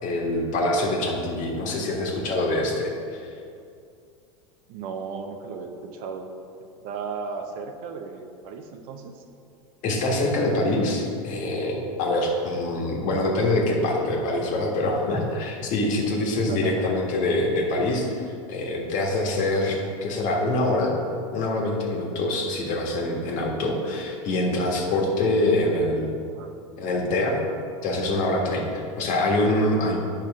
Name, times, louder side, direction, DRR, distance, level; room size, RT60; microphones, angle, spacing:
voice 1, 0.0-3.3 9.8-20.9 21.3-26.1 26.8-27.4 27.8-30.0, left 2 dB, 50° left, -1 dB, 1.6 m, -25 dB
voice 2, 4.7-6.3 6.6-9.2 16.5-17.0 20.1-20.3 26.3-26.5 29.8-29.9, right 5 dB, 55° right, 5 dB, 0.8 m, -36 dB
8.8 x 5.7 x 3.6 m, 2.4 s
hypercardioid pair, 105°, 17 cm